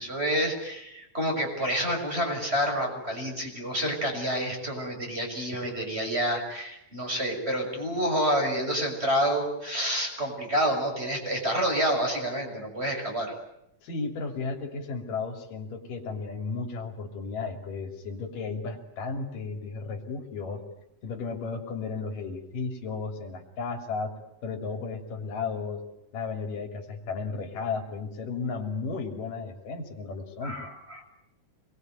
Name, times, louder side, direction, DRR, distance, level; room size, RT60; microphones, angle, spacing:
voice 1, 0.0-13.3 30.4-31.0, equal, 15° right, 2 dB, 6.6 m, -28 dB
voice 2, 13.8-20.6 21.0-24.1 24.4-25.8 26.1-30.7, left 4 dB, 90° left, 4 dB, 4.6 m, -34 dB
26.5 x 22.0 x 9.2 m, 0.83 s
omnidirectional pair, 3.7 m